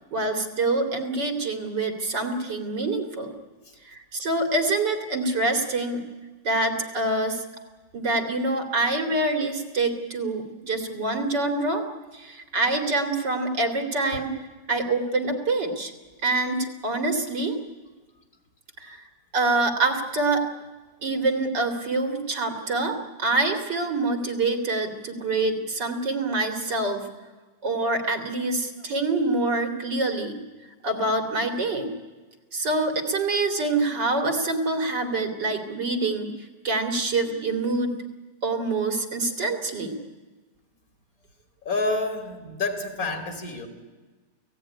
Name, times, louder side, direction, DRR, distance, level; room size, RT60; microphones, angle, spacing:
voice 1, 0.1-3.3 3.9-6.0 6.4-7.4 7.9-11.8 12.1-14.3 14.7-15.9 16.2-17.6 18.8-19.1 19.3-20.4 21.0-27.1 27.6-30.4 30.8-31.9 32.5-36.3 36.6-37.9 38.4-40.0, right 2 dB, 85° right, 6 dB, 3.4 m, -26 dB
voice 2, 41.6-43.7, left 3 dB, 55° left, 6 dB, 3.4 m, -28 dB
29.0 x 17.0 x 9.9 m, 1.3 s
omnidirectional pair, 1.9 m